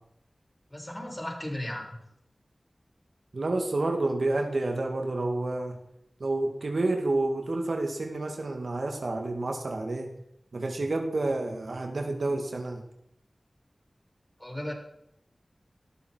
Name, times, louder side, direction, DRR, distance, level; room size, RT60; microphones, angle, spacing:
voice 1, 0.7-2.0 14.4-14.7, left 1 dB, 20° left, -2 dB, 7.4 m, -35 dB
voice 2, 3.3-5.8 6.2-10.1 10.5-12.8, right 2 dB, 80° right, 3 dB, 2.3 m, -29 dB
18.5 x 13.5 x 4.7 m, 0.78 s
cardioid pair, 40°, 0 cm